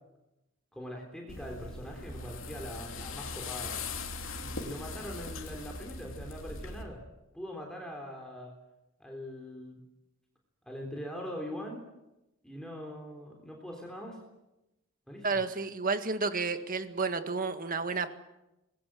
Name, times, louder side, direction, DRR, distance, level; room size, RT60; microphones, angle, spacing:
voice 1, 0.7-3.7 4.4-7.1 7.3-8.5 9.0-9.8 10.6-11.8 12.4-14.2 15.1-15.4, equal, 5° left, 0 dB, 3.6 m, -42 dB
sound 1, 1.3-6.8, left 3 dB, 65° left, 3.2 m, -40 dB
voice 2, 15.2-18.1, right 4 dB, 40° right, 9 dB, 1.8 m, -31 dB
25.5 x 21.0 x 7.7 m, 0.96 s
head